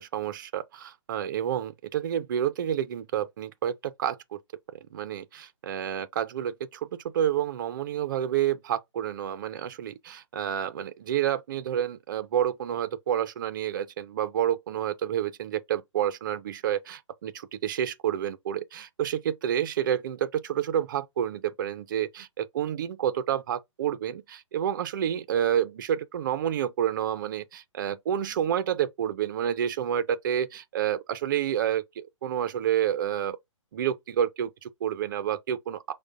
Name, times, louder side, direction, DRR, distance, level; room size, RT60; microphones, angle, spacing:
voice 1, 0.0-4.4 4.9-33.4 33.7-35.9, right 10 dB, 40° right, 0.4 m, -29 dB
4.8 x 2.1 x 3.6 m
figure-of-eight pair, 135°, 16 cm